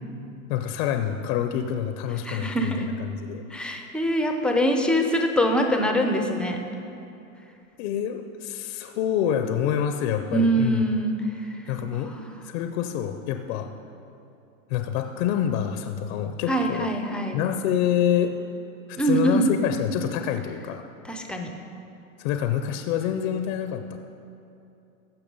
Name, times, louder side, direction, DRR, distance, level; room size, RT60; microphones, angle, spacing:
voice 1, 0.5-3.4 7.8-10.8 11.7-12.1 12.4-13.7 14.7-16.9 17.3-18.3 18.9-20.8 22.2-24.0, left 9 dB, 50° left, 7 dB, 0.6 m, -27 dB
voice 2, 2.2-2.9 3.5-6.6 10.3-12.3 16.5-17.4 19.0-19.5 21.0-21.5, right 1 dB, ahead, 4 dB, 0.5 m, -24 dB
15.0 x 5.8 x 5.4 m, 2.7 s
supercardioid pair, 130°, 40 cm